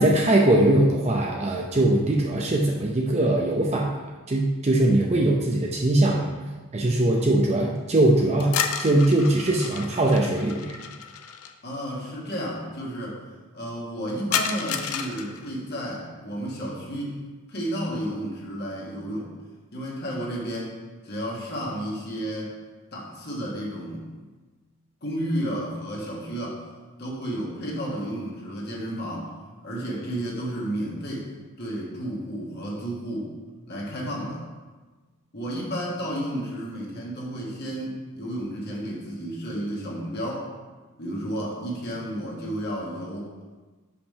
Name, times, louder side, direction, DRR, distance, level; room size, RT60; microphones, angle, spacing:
voice 1, 0.0-3.9 4.3-6.3 6.7-10.8, right 1 dB, 30° right, -1 dB, 0.6 m, -21 dB
sound 1, 8.4-11.5 14.3-15.5, left 7 dB, 90° left, 0.6 m, -31 dB
voice 2, 11.6-13.2 13.5-17.2 17.5-19.3 19.7-20.8 21.0-22.5 22.9-24.1 25.0-26.6 27.0-29.3 29.6-31.3 31.6-33.3 33.7-34.4 35.3-40.5 41.0-43.3, equal, 50° left, -3 dB, 1.6 m, -32 dB
5.7 x 5.2 x 5.4 m, 1.3 s
head